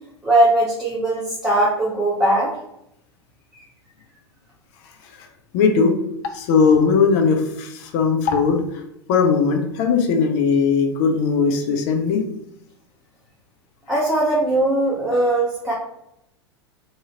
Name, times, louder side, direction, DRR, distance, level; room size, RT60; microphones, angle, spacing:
voice 1, 0.2-2.6 3.5-3.7 13.9-15.7, right 1 dB, 5° right, -6 dB, 0.7 m, -19 dB
voice 2, 5.5-5.9 6.3-8.8 9.1-12.2, left 5 dB, 40° left, 3 dB, 0.5 m, -18 dB
2.7 x 2.4 x 2.9 m, 0.80 s
figure-of-eight pair, 90°, 14 cm